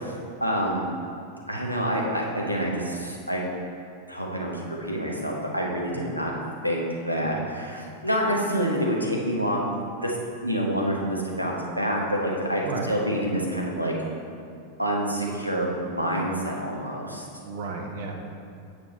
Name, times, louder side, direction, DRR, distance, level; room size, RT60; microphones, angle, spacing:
voice 1, 0.4-0.8 1.5-3.5 4.1-6.3 6.6-9.6 10.0-10.1 10.4-13.9 14.8-17.3, equal, 90° right, -2 dB, 1.1 m, -27 dB
voice 2, 12.6-12.9 17.4-18.1, right 4 dB, 55° right, 3 dB, 1.0 m, -34 dB
8.4 x 5.2 x 4.1 m, 2.3 s
figure-of-eight pair, 90°, 0 cm